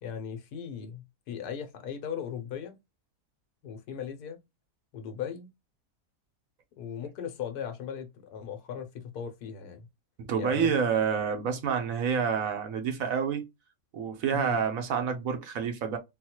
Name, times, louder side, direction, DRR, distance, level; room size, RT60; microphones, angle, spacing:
voice 1, 0.0-2.8 3.6-4.4 4.9-5.5 6.8-9.9 10.3-11.0 14.3-14.6, left 8 dB, 80° left, 1.2 m, -38 dB
voice 2, 10.3-13.5 13.9-16.0, right 7 dB, 70° right, 1.0 m, -28 dB
3.9 x 2.2 x 2.8 m
omnidirectional pair, 1.6 m